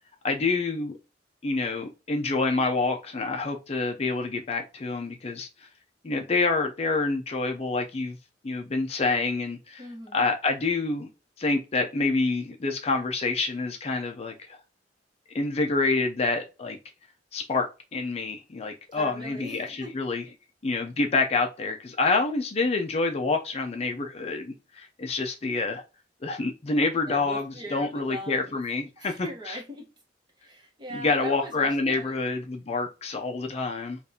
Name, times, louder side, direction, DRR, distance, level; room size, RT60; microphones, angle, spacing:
voice 1, 0.2-0.9 1.4-5.7 6.0-8.2 8.4-9.8 10.1-11.1 11.4-14.6 15.3-16.8 17.3-20.2 20.6-25.8 26.2-29.6 30.9-34.0, left 3 dB, 35° left, 0.4 m, -27 dB
voice 2, 9.8-10.2 18.9-20.0 27.1-28.6 29.0-29.9 30.4-32.1, right 1 dB, 25° right, 1.1 m, -40 dB
5.1 x 2.4 x 2.7 m
head